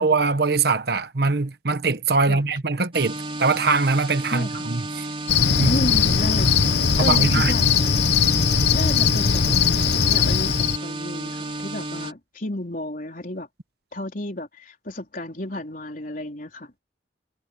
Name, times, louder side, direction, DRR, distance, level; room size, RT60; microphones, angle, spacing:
voice 1, 0.0-5.1 5.6-5.8 7.0-7.5, right 4 dB, 60° right, 1.2 m, -22 dB
sound 1, 2.9-12.1, right 2 dB, 30° right, 4.1 m, -32 dB
voice 2, 4.3-4.7 5.6-6.6 7.0-7.7 8.7-13.5 13.9-16.8, left 1 dB, 50° left, 4.1 m, -32 dB
Cricket, 5.3-10.8, left 6 dB, 65° left, 0.9 m, -20 dB
head